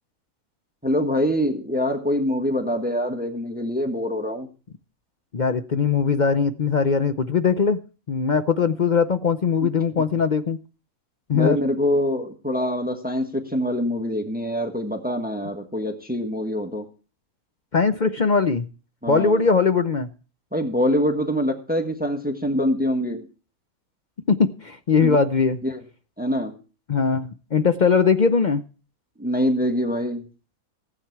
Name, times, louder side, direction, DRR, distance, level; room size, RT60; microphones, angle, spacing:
voice 1, 0.8-4.5 11.3-16.9 19.0-19.4 20.5-23.3 25.0-25.2 25.6-25.8 26.2-26.5 29.2-30.3, equal, 5° right, 5 dB, 1.4 m, -24 dB
voice 2, 5.3-7.8 8.1-10.6 11.3-11.6 17.7-18.7 19.1-20.1 24.3-25.6 26.9-28.6, left 5 dB, 50° left, 10 dB, 0.5 m, -20 dB
15.5 x 8.6 x 4.6 m, 0.36 s
omnidirectional pair, 1.6 m